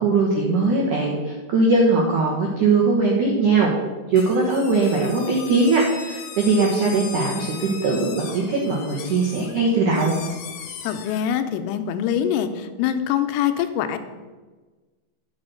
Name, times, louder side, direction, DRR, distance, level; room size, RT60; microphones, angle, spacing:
voice 1, 0.0-3.7 4.1-10.2, right 3 dB, 80° right, -2 dB, 1.7 m, -20 dB
sound 1, 4.1-11.2, left 7 dB, 70° left, 2.5 m, -38 dB
voice 2, 10.8-14.0, left 9 dB, 85° left, 7 dB, 3.2 m, -24 dB
10.5 x 6.3 x 6.5 m, 1.3 s
omnidirectional pair, 6.0 m